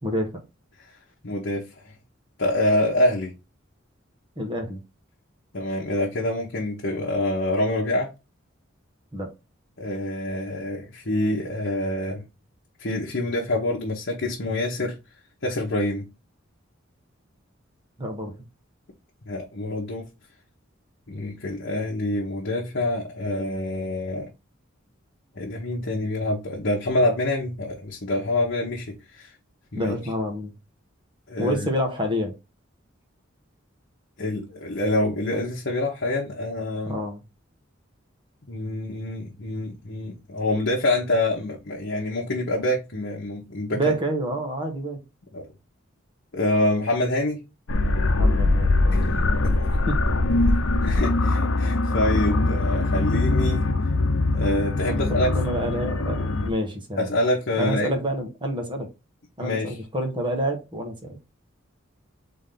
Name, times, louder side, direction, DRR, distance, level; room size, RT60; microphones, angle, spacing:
voice 1, 0.0-0.4 4.4-4.8 9.1-9.3 18.0-18.3 29.7-30.5 31.4-32.3 36.8-37.2 43.7-45.0 48.1-49.3 49.9-50.0 54.9-57.1 57.6-58.9 59.4-61.2, equal, 25° right, 1.2 m, -28 dB
voice 2, 1.2-1.6 2.4-3.3 5.5-8.1 9.8-12.2 12.8-15.0 15.4-16.0 19.3-20.0 21.1-24.3 25.4-29.3 29.7-29.9 31.3-31.7 34.2-36.9 38.5-44.0 45.3-45.4 46.3-47.4 48.9-49.7 50.8-53.7 54.3-55.3 57.0-57.9 59.4-59.8, left 1 dB, 60° left, 1.1 m, -26 dB
sound 1, 47.7-56.5, left 2 dB, 90° left, 0.7 m, -22 dB
3.8 x 3.7 x 3.7 m
head